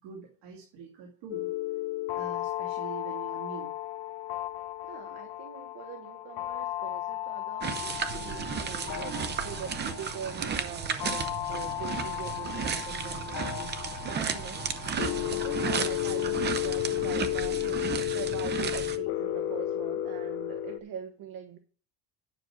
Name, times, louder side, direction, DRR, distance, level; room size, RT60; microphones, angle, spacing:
voice 1, 0.0-1.5 2.1-3.7 5.1-5.2, right 5 dB, 75° right, -1 dB, 2.7 m, -44 dB
sound 1, 1.3-20.8, left 15 dB, 65° left, 0.8 m, -34 dB
voice 2, 4.8-21.6, right 9 dB, 55° right, 6 dB, 1.1 m, -43 dB
sound 2, 7.6-19.0, right 6 dB, 25° right, 0.8 m, -34 dB
10.0 x 6.3 x 6.1 m, 0.43 s
cardioid pair, 180°, 41 cm